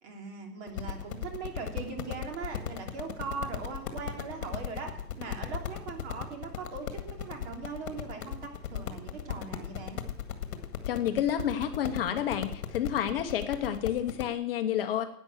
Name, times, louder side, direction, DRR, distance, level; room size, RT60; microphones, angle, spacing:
voice 1, 0.0-4.9 5.2-10.0, right 4 dB, 45° right, 3 dB, 3.2 m, -40 dB
sound 1, 0.7-14.3, left 9 dB, 60° left, 1.9 m, -38 dB
voice 2, 10.9-15.0, left 10 dB, 35° left, 7 dB, 0.9 m, -29 dB
12.0 x 9.5 x 7.8 m, 0.68 s
supercardioid pair, 170°, 47 cm